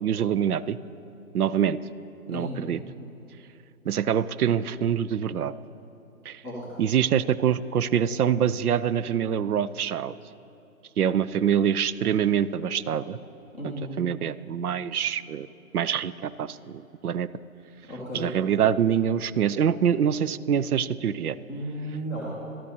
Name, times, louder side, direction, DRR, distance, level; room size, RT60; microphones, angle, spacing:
voice 1, 0.0-0.8 1.3-1.8 2.3-2.8 3.9-5.5 6.3-6.4 6.8-10.1 11.0-13.2 13.6-15.5 15.7-17.3 18.1-21.4, right 8 dB, 85° right, 17 dB, 0.5 m, -25 dB
voice 2, 2.3-2.7 6.4-6.6 13.5-14.0 17.9-18.3 21.5-22.2, equal, 5° right, -8 dB, 0.5 m, -34 dB
13.5 x 12.5 x 2.8 m, 2.8 s
figure-of-eight pair, 140°, 43 cm